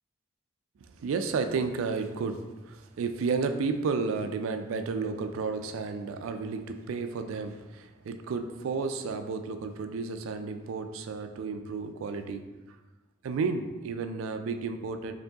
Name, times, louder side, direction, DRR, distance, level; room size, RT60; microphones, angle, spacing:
voice 1, 0.8-12.4 13.2-15.1, right 4 dB, 85° right, 8 dB, 0.3 m, -32 dB
4.5 x 2.7 x 2.7 m, 1.2 s
head